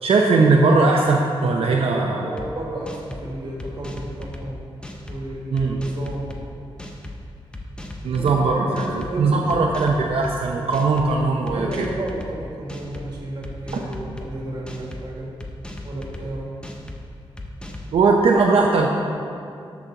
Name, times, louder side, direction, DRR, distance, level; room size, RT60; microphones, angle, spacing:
voice 1, 0.0-2.3 5.5-5.8 8.0-11.9 17.9-18.9, right 3 dB, 85° right, -1 dB, 0.7 m, -19 dB
voice 2, 2.0-4.6 5.0-6.4 8.1-9.7 11.5-15.3 15.8-16.5, right 1 dB, 45° right, -4 dB, 2.1 m, -33 dB
sound 1, 2.4-2.5 2.9-3.2 3.6-4.4 4.8-5.2 5.6-6.4 6.8-7.2 7.5-8.4 8.8-9.1 9.5-10.3 10.7-11.1 11.5-12.3 12.7-13.1 13.4-14.3 14.7-15.0 15.4-16.2 16.6-17.0 17.4-17.9, left 2 dB, 10° left, 0.7 m, -36 dB
12.0 x 6.1 x 4.0 m, 2.5 s
wide cardioid pair, 165°, 10 cm